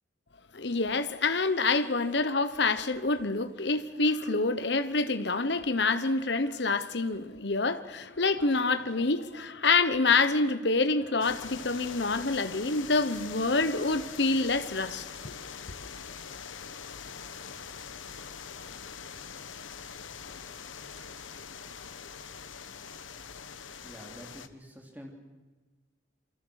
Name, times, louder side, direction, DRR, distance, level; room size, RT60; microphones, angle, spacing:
voice 1, 0.5-15.3, left 3 dB, 65° left, 1.1 m, -27 dB
sound 1, 11.2-24.5, left 6 dB, 85° left, 1.2 m, -43 dB
voice 2, 23.8-25.1, equal, 10° right, 3.6 m, -47 dB
27.5 x 24.5 x 6.6 m
head